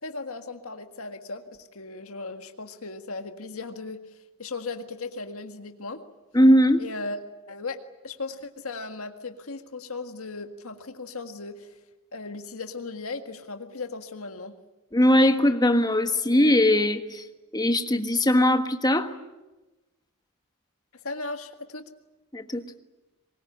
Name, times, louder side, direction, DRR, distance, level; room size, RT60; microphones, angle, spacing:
voice 1, 0.0-4.0 4.4-6.0 6.8-7.2 7.5-11.7 12.1-14.5 21.0-21.9, left 3 dB, 70° left, 6 dB, 1.8 m, -37 dB
voice 2, 6.3-6.8 14.9-17.3 17.5-19.1 22.3-22.6, left 1 dB, 20° left, 7 dB, 1.5 m, -20 dB
24.0 x 21.0 x 9.9 m, 1.1 s
head